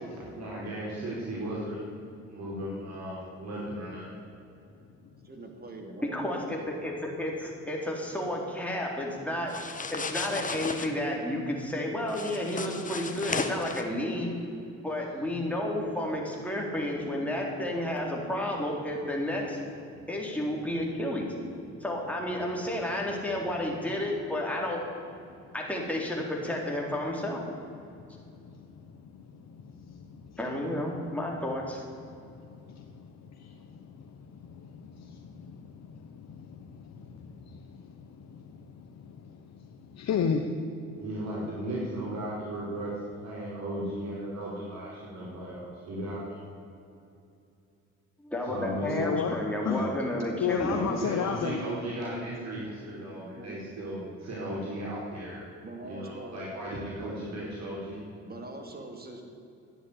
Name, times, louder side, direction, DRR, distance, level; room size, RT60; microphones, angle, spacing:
voice 1, 0.3-1.8 2.3-4.2 40.9-42.9 43.2-46.4 48.4-49.2 49.6-49.9 50.7-55.4 55.8-58.0, right 1 dB, 60° right, -6 dB, 4.7 m, -36 dB
voice 2, 5.2-6.3 53.2-53.6 55.6-56.5 58.2-59.2, right 2 dB, 30° right, 3 dB, 2.9 m, -43 dB
voice 3, 6.0-9.6 9.9-14.3 14.8-19.6 20.1-21.3 21.8-24.8 25.5-27.4 30.4-31.8 48.2-50.8, left 1 dB, 5° left, -2 dB, 4.0 m, -31 dB
sound 1, 9.5-10.9 12.1-13.8, left 4 dB, 25° left, 1.4 m, -34 dB
voice 4, 28.0-30.4 32.0-40.5 48.8-49.4 49.6-49.9 50.4-51.6, left 7 dB, 60° left, 4 dB, 1.2 m, -35 dB
12.5 x 9.8 x 9.8 m, 2.6 s
cardioid pair, 90°, 30 cm